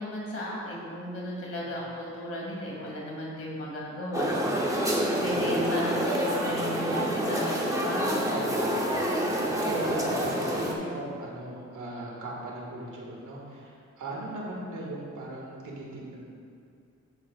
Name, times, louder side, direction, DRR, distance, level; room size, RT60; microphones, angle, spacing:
voice 1, 0.0-8.4, left 1 dB, 50° left, -4 dB, 2.2 m, -35 dB
sound 1, 4.1-10.7, equal, 10° right, 0.8 m, -27 dB
voice 2, 8.3-8.7 9.6-16.2, right 2 dB, 85° right, -3 dB, 1.9 m, -38 dB
11.0 x 8.4 x 2.4 m, 2.3 s
wide cardioid pair, 175°, 30 cm